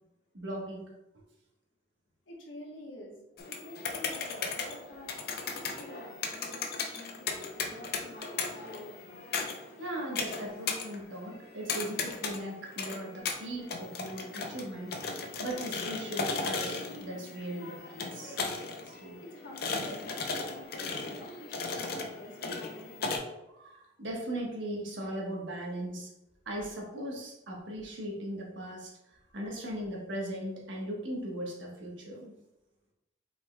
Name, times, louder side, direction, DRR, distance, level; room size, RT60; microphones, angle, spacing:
voice 1, 0.3-0.8 9.8-14.9 15.4-18.4 19.0-19.2 23.5-26.1 26.4-28.9 29.3-32.3, right 1 dB, 80° right, -2 dB, 1.2 m, -38 dB
voice 2, 2.3-3.2 3.5-5.2 5.5-9.2 18.5-18.6 18.9-23.2, left 1 dB, 85° left, -2 dB, 1.2 m, -48 dB
sound 1, 3.4-23.2, left 4 dB, 55° left, 0.5 m, -37 dB
5.3 x 4.2 x 2.2 m, 0.94 s
head